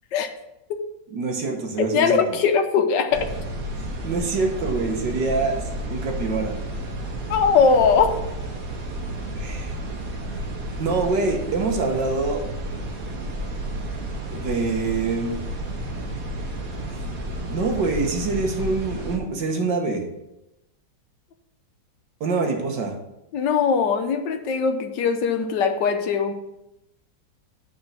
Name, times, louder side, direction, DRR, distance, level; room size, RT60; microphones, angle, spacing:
voice 1, 1.1-2.4 4.0-5.6 5.9-6.6 9.4-9.7 10.8-12.4 14.3-15.4 17.5-20.0 22.2-22.9, right 3 dB, 75° right, 2 dB, 2.0 m, -25 dB
voice 2, 1.8-3.3 7.3-8.1 23.3-26.3, left 5 dB, 75° left, 7 dB, 1.4 m, -20 dB
sound 1, 3.1-19.2, right 1 dB, 55° right, 1.6 m, -32 dB
9.6 x 4.6 x 6.0 m, 0.90 s
omnidirectional pair, 1.9 m